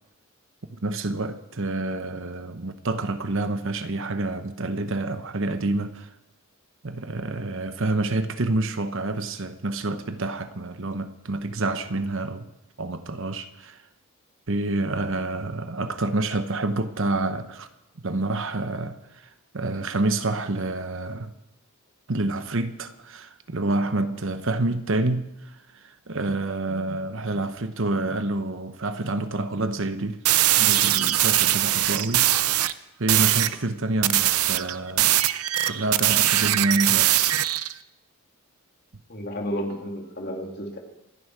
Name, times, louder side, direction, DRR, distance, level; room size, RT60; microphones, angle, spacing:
voice 1, 0.7-6.1 6.8-12.5 12.8-13.8 14.5-17.7 18.0-21.3 22.1-30.2 30.6-32.4 33.0-35.2 35.6-37.4, right 2 dB, 60° right, 1.0 m, -28 dB
sound 1, 30.3-32.7 33.1-33.6 34.0-37.7, right 13 dB, 80° right, 0.6 m, -21 dB
voice 2, 39.1-40.8, equal, 45° left, 2.7 m, -32 dB
26.5 x 10.5 x 4.8 m
head